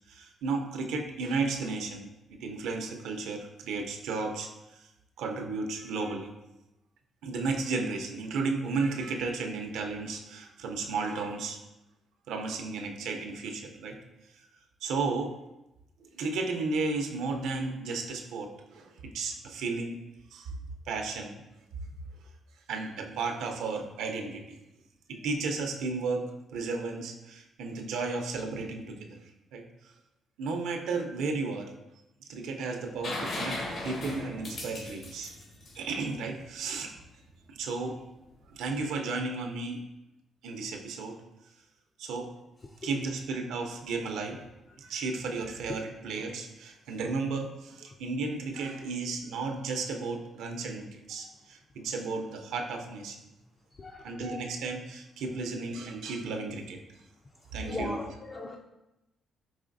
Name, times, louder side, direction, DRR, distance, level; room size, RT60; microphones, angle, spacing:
voice 1, 0.1-2.1 2.4-4.9 5.2-6.3 7.2-11.6 12.3-14.0 14.8-15.4 16.0-20.0 20.3-20.5 20.9-21.4 22.7-24.6 25.1-29.2 29.5-29.9 30.4-31.7 32.3-33.6 33.8-35.3 35.8-36.9 37.5-38.0 38.5-39.8 40.4-41.2 42.0-42.4 42.8-44.4 44.8-53.2 54.0-56.8 57.5-58.0, right 3 dB, 85° right, 3 dB, 0.5 m, -33 dB
sound 1, 33.0-36.7 38.6-38.7, left 2 dB, 60° left, 1.0 m, -37 dB
voice 2, 53.8-54.2 57.6-58.6, left 2 dB, 30° left, 0 dB, 0.3 m, -37 dB
4.8 x 3.2 x 2.5 m, 0.95 s
cardioid pair, 90°, 0 cm